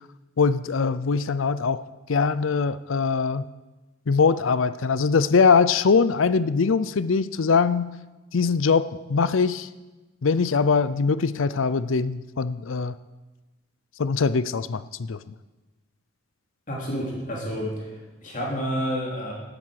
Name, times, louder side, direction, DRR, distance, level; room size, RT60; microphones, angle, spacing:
voice 1, 0.4-1.8 2.1-3.5 4.1-7.9 8.3-9.7 10.2-13.0 14.0-15.2, left 5 dB, 80° left, 15 dB, 0.5 m, -22 dB
voice 2, 16.7-19.3, equal, 40° left, -2 dB, 3.3 m, -30 dB
15.0 x 8.9 x 6.5 m, 1.1 s
head